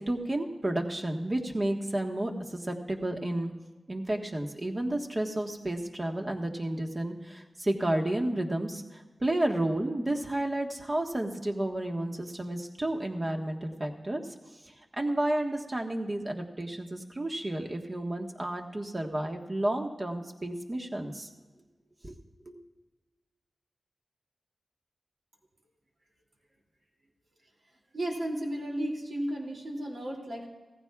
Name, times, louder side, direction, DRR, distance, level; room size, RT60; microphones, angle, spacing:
voice 1, 0.0-3.5 3.9-14.2 15.0-21.3 22.0-22.1 22.4-22.6, right 1 dB, 30° right, 2 dB, 1.4 m, -31 dB
voice 2, 27.9-30.5, right 1 dB, 65° right, 0 dB, 2.8 m, -33 dB
17.5 x 15.0 x 2.4 m, 1.3 s
wide cardioid pair, 75°, 0 cm